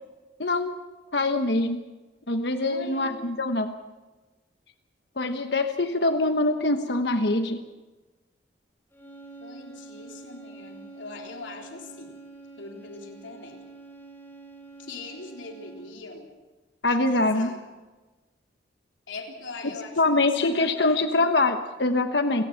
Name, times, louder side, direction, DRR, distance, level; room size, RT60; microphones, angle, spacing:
voice 1, 0.4-0.7 1.1-1.8 2.3-3.7 5.2-7.6 16.8-17.5 20.0-22.4, left 2 dB, 65° left, 7 dB, 1.2 m, -24 dB
voice 2, 2.6-3.3 9.4-12.2 12.6-13.6 14.8-16.3 16.9-17.6 19.1-21.3, left 3 dB, 90° left, 1 dB, 3.7 m, -41 dB
sound 1, 8.9-16.1, right 3 dB, 10° left, 5.7 m, -46 dB
29.0 x 18.5 x 5.9 m, 1.2 s
head